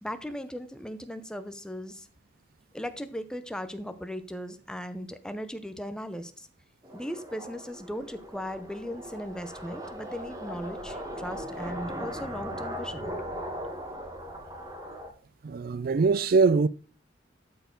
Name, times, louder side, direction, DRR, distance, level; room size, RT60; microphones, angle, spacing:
voice 1, 0.0-2.1 2.7-6.5 6.9-13.1, equal, 5° left, 0.7 m, -37 dB
sound 1, 6.8-15.1, equal, 20° right, 1.3 m, -38 dB
voice 2, 15.4-16.7, right 4 dB, 50° right, 0.4 m, -22 dB
12.5 x 4.6 x 3.8 m
head